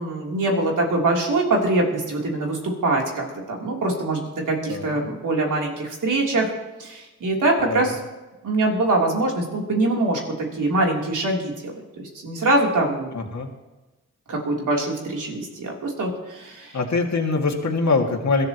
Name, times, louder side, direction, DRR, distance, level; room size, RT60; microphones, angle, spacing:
voice 1, 0.0-6.5 6.8-8.0 8.4-11.7 12.0-13.1 14.3-16.8, right 2 dB, 80° right, -1 dB, 3.4 m, -23 dB
voice 2, 13.1-13.5 16.7-18.5, left 3 dB, 65° left, 2 dB, 2.2 m, -23 dB
22.0 x 13.0 x 3.0 m, 1.1 s
cardioid pair, 50°, 31 cm